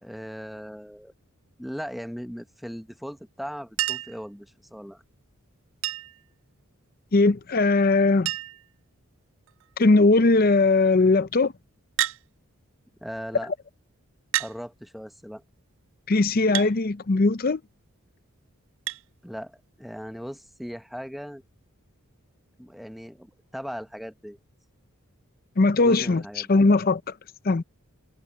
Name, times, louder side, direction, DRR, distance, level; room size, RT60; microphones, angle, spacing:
voice 1, 0.0-1.1 1.6-5.0 13.0-13.5 14.4-15.4 19.2-21.4 22.6-24.4 25.7-26.5, equal, ahead, 0.8 m, -38 dB
Chink clink, 3.8-4.2 5.8-6.2 7.6-7.7 7.9-8.0 8.3-8.7 9.5-9.8 12.0-12.2 13.3-13.4 14.3-14.6 16.5-16.7 18.9-19.0 20.5-20.6, right 15 dB, 60° right, 0.4 m, -29 dB
voice 2, 7.1-8.3 9.8-11.5 16.1-17.6 25.6-26.2 26.5-27.0 27.4-27.6, left 3 dB, 40° left, 0.6 m, -19 dB
head